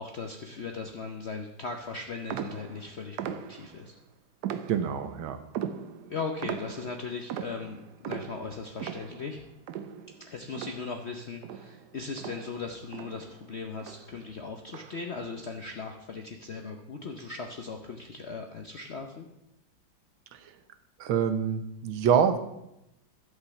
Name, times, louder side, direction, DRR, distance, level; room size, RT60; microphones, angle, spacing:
voice 1, 0.0-3.9 6.1-7.8 8.0-9.4 10.3-19.3, left 4 dB, 65° left, 4 dB, 0.6 m, -38 dB
sound 1, 2.3-3.9 4.4-5.2 5.5-11.2 11.4-13.5 13.8-14.2 14.7-15.2, right 9 dB, 70° right, 1.1 m, -39 dB
voice 2, 4.7-5.4 20.3-20.5 21.0-22.4, right 7 dB, 90° right, 9 dB, 1.7 m, -26 dB
11.5 x 5.6 x 6.8 m, 0.85 s
omnidirectional pair, 2.1 m